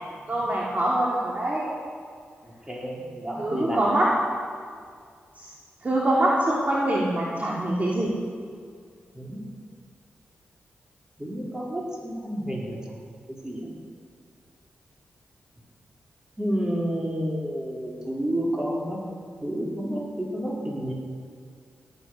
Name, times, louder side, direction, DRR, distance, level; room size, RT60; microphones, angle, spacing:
voice 1, 0.3-1.7 3.4-4.1 5.8-8.1, right 1 dB, 35° right, -5 dB, 3.0 m, -24 dB
voice 2, 2.4-3.8 9.1-9.4 11.2-12.8 13.3-13.7 16.4-19.0 19.4-20.9, equal, 15° right, -4 dB, 4.6 m, -30 dB
18.0 x 9.5 x 6.7 m, 2.1 s
cardioid pair, 70°, 4 cm